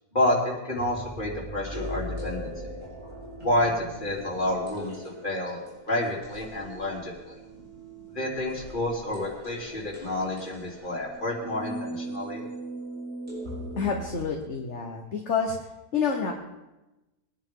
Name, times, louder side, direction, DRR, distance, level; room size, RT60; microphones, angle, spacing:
voice 1, 0.1-2.5 3.4-4.9 5.2-7.4 8.1-12.4, left 1 dB, 35° left, -4 dB, 3.8 m, -29 dB
sound 1, 0.7-14.1, right 1 dB, 60° right, 5.0 m, -40 dB
voice 2, 13.8-15.6 15.9-16.3, left 5 dB, 50° left, 1 dB, 1.6 m, -28 dB
23.0 x 10.5 x 3.8 m, 1.0 s
omnidirectional pair, 1.5 m